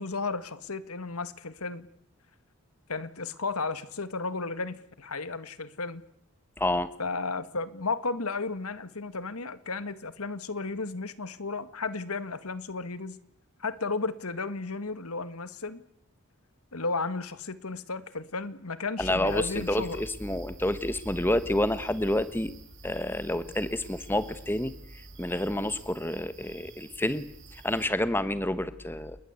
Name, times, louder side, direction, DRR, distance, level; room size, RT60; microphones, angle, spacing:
voice 1, 0.0-1.9 2.9-6.0 7.0-13.2 13.6-15.8 16.7-20.0, left 3 dB, 80° left, 13 dB, 1.9 m, -34 dB
voice 2, 6.6-6.9 19.0-22.5 22.8-29.2, left 1 dB, 10° left, 13 dB, 1.1 m, -29 dB
sound 1, 19.3-27.9, right 4 dB, 55° right, 4.8 m, -51 dB
29.5 x 21.0 x 8.3 m, 0.72 s
head